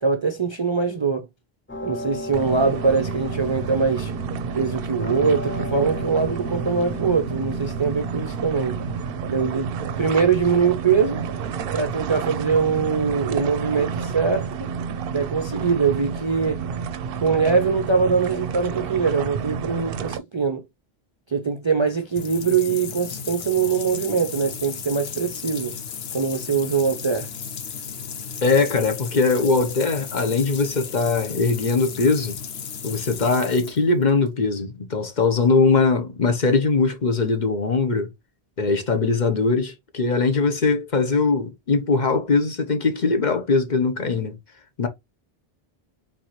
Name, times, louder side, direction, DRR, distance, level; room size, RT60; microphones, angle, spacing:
voice 1, 0.0-1.2 1.8-4.1 4.5-8.8 9.3-11.2 11.7-14.5 15.1-16.6 17.2-20.6 21.3-25.7 26.1-27.3, right 5 dB, 40° right, 0.5 m, -22 dB
sound 1, 1.7-9.2, left 1 dB, 20° left, 0.4 m, -35 dB
sound 2, 2.3-20.2, right 6 dB, 70° right, 0.7 m, -30 dB
sound 3, 21.9-34.3, left 7 dB, 80° left, 1.0 m, -35 dB
voice 2, 28.4-32.4 32.8-38.1 38.6-44.4 44.8-44.9, left 4 dB, 50° left, 1.0 m, -21 dB
4.5 x 3.7 x 3.0 m
omnidirectional pair, 1.0 m